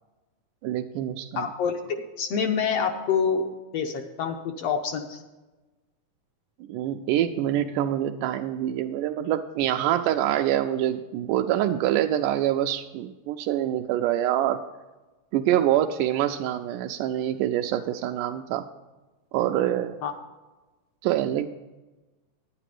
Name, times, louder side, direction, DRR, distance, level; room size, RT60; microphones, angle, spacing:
voice 1, 0.6-1.5 6.7-14.6 15.3-18.6 19.3-20.0 21.0-21.5, right 12 dB, 90° right, 5 dB, 2.1 m, -25 dB
voice 2, 1.3-3.5 3.7-5.2 20.0-20.1, left 6 dB, 70° left, 5 dB, 1.5 m, -27 dB
11.0 x 9.9 x 4.9 m, 1.1 s
omnidirectional pair, 3.6 m